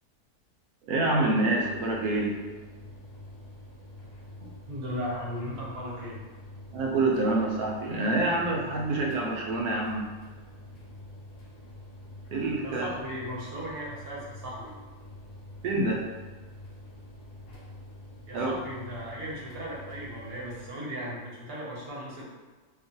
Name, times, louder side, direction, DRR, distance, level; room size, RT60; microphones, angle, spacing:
voice 1, 0.9-2.4 6.7-10.1 12.3-12.9 15.6-16.0 18.3-18.5, right 2 dB, 85° right, -1 dB, 1.1 m, -26 dB
sound 1, 1.6-20.7, left 1 dB, 60° left, 0.6 m, -47 dB
voice 2, 4.4-6.2 12.6-14.7 18.3-22.2, equal, 55° right, -5 dB, 0.7 m, -37 dB
2.9 x 2.1 x 2.6 m, 1.3 s
omnidirectional pair, 1.6 m